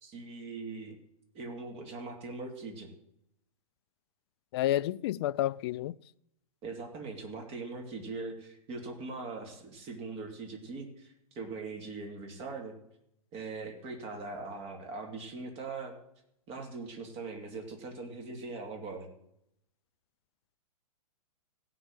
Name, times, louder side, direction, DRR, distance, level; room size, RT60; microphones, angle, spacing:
voice 1, 0.0-1.0 1.3-2.9 6.6-12.8 13.3-16.0 16.5-19.1, right 3 dB, 30° right, 2.7 m, -41 dB
voice 2, 4.5-5.9, left 13 dB, 45° left, 0.4 m, -30 dB
16.0 x 5.9 x 7.5 m
hypercardioid pair, 120°, 18 cm